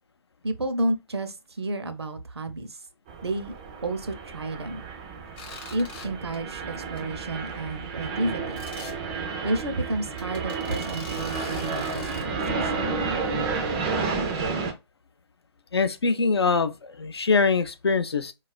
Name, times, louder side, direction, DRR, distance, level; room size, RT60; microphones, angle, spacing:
voice 1, 0.4-2.8 3.2-3.5 3.8-4.9 5.7-8.6 9.4-13.0, right 2 dB, 70° right, 0.6 m, -31 dB
sound 1, 3.1-14.7, right 4 dB, 15° right, 0.3 m, -31 dB
sound 2, 5.4-6.1 6.3-6.6 7.0-7.1 7.4-7.5 8.6-8.9 9.6-9.7 10.2-12.2, left 5 dB, 25° left, 0.6 m, -42 dB
voice 2, 15.7-18.3, left 4 dB, 70° left, 0.5 m, -23 dB
4.1 x 2.4 x 2.3 m
figure-of-eight pair, 135°, 14 cm